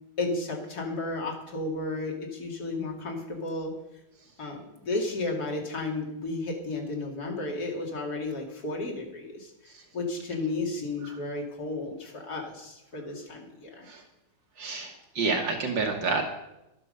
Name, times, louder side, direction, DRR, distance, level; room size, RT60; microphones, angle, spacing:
voice 1, 0.2-3.7 4.4-9.5 9.9-13.9, left 2 dB, 50° left, 0 dB, 2.7 m, -33 dB
voice 2, 14.6-16.2, right 4 dB, 65° right, 3 dB, 1.9 m, -28 dB
12.0 x 9.0 x 6.6 m, 0.91 s
omnidirectional pair, 2.2 m